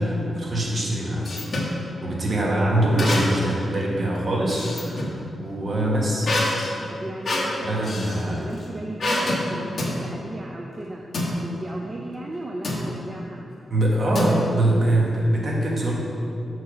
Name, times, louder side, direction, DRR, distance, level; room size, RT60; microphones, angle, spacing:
voice 1, 0.0-1.4 2.0-5.1 5.4-6.3 7.6-8.5 13.7-15.9, right 1 dB, 45° right, -3 dB, 1.4 m, -23 dB
sound 1, 0.7-1.8 3.0-3.6 3.9-5.2 6.2-8.2 9.0-9.4 9.8-10.0 11.1-11.3 12.6-12.9 14.1-14.7, left 1 dB, 45° left, 1.3 m, -26 dB
voice 2, 6.9-7.8 8.3-11.0 11.4-13.4, right 1 dB, 25° right, 0 dB, 0.5 m, -35 dB
6.5 x 4.9 x 5.1 m, 2.6 s
wide cardioid pair, 110°, 0 cm